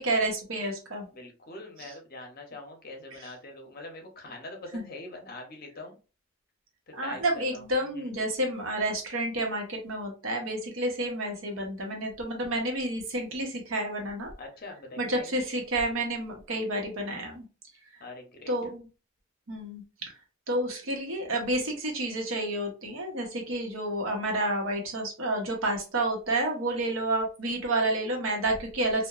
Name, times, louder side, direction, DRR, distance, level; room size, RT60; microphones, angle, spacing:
voice 1, 0.0-1.1 1.8-1.9 4.7-4.8 6.9-14.3 15.0-17.5 18.5-18.9 19.5-19.8 20.5-29.1, right 1 dB, 75° right, 2 dB, 0.8 m, -30 dB
voice 2, 1.1-6.0 7.0-7.6 7.9-8.1 14.4-15.4 18.0-18.5, left 2 dB, 45° left, 3 dB, 0.7 m, -43 dB
2.8 x 2.1 x 2.3 m, 0.34 s
head